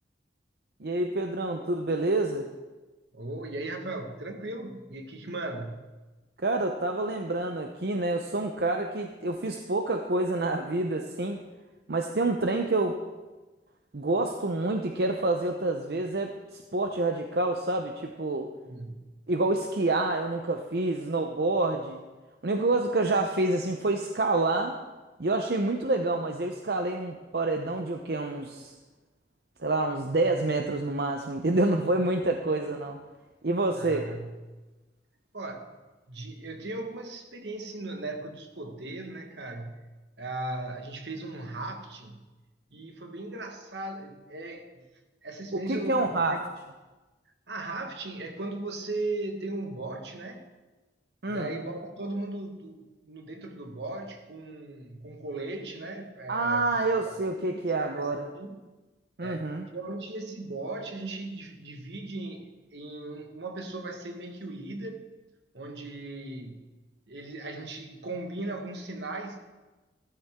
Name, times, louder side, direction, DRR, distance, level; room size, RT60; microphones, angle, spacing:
voice 1, 0.8-2.5 6.4-11.4 11.9-13.0 13.9-18.5 19.3-22.0 22.4-24.7 25.2-28.7 29.6-33.0 33.4-34.2 45.5-46.4 51.2-51.5 56.3-58.3 59.2-59.7, right 2 dB, 60° right, 4 dB, 0.8 m, -27 dB
voice 2, 3.1-5.9 18.6-19.0 33.8-34.4 35.3-35.7 36.1-39.9 40.2-42.3 42.7-44.9 45.2-46.4 47.5-50.4 51.3-56.7 57.4-58.6 59.2-65.0 65.5-66.6 67.1-69.4, right 2 dB, 80° right, 4 dB, 1.6 m, -37 dB
15.0 x 13.0 x 3.7 m, 1.2 s
head